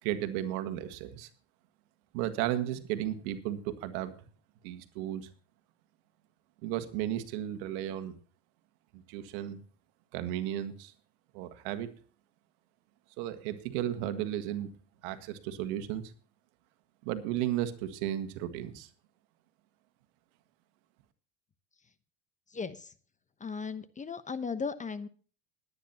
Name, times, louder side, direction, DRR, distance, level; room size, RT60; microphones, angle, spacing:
voice 1, 0.0-1.3 2.1-4.1 4.6-5.3 6.6-8.2 8.9-9.6 10.1-10.9 11.3-11.9 13.2-14.7 15.0-16.1 17.0-18.9, right 12 dB, 65° right, 10 dB, 1.8 m, -34 dB
voice 2, 22.5-22.9 23.4-25.1, left 5 dB, 20° left, 13 dB, 1.0 m, -36 dB
20.0 x 9.7 x 2.9 m, 0.40 s
hypercardioid pair, 90°, 39 cm